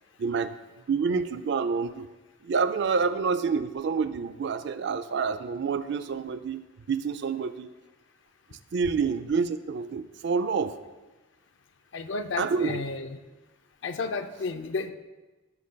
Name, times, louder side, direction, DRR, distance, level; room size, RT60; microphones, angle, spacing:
voice 1, 0.2-0.5 0.9-2.1 2.4-7.7 8.7-10.8 12.4-12.8, right 5 dB, 60° right, 12 dB, 0.4 m, -28 dB
voice 2, 11.9-13.2 13.8-14.9, left 4 dB, 65° left, 9 dB, 0.5 m, -32 dB
14.5 x 6.4 x 2.2 m, 1.2 s
head